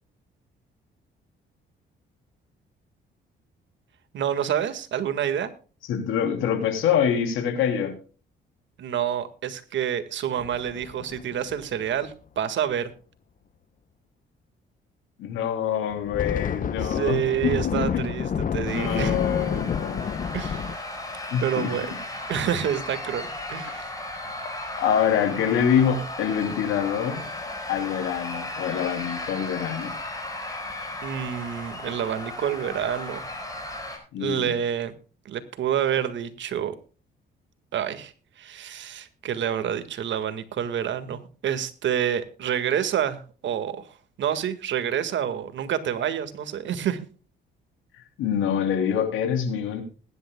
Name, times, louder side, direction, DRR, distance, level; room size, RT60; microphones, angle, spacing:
voice 1, 4.1-5.5 8.8-12.9 16.8-19.2 20.3-20.7 21.4-21.9 22.3-23.9 31.0-33.2 34.2-34.9 35.3-36.7 37.7-38.1 38.4-43.8 44.2-47.0, right 9 dB, 70° right, 11 dB, 1.8 m, -28 dB
voice 2, 5.9-7.9 15.2-18.0 18.6-20.4 21.3-21.7 23.6-23.7 24.8-27.2 27.7-29.9 34.1-34.5 48.2-49.8, left 8 dB, 90° left, 7 dB, 3.1 m, -25 dB
sound 1, 10.4-12.1 15.9-20.8, left 7 dB, 45° left, 0.7 m, -29 dB
sound 2, 18.6-34.0, left 2 dB, 15° left, 5.0 m, -35 dB
21.0 x 11.0 x 2.2 m, 0.37 s
cardioid pair, 90°, 20 cm